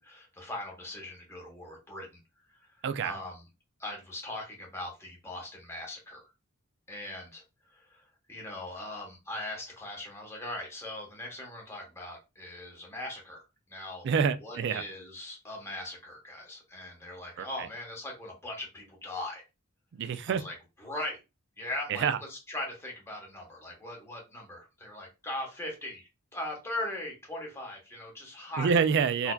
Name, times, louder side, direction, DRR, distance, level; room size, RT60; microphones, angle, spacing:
voice 1, 0.0-2.1 2.5-3.4 3.8-6.3 6.9-7.4 7.7-13.4 13.7-14.1 14.4-19.4 20.3-21.2 21.6-28.8 29.2-29.3, left 1 dB, 10° left, 1.1 m, -40 dB
voice 2, 2.8-3.2 14.0-14.8 17.4-17.7 19.9-20.4 21.9-22.2 28.6-29.3, right 6 dB, 55° right, 0.3 m, -27 dB
4.2 x 2.7 x 2.2 m
head